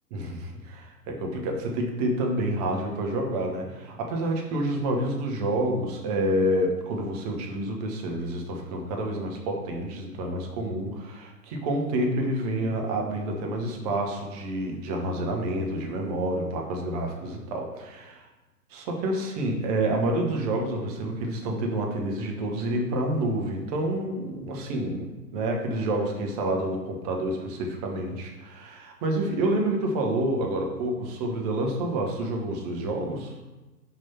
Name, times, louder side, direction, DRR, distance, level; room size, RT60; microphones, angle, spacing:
voice 1, 0.1-18.3 18.7-33.3, right 1 dB, 25° right, 1 dB, 1.0 m, -28 dB
5.7 x 4.9 x 5.7 m, 1.1 s
figure-of-eight pair, 125°, 48 cm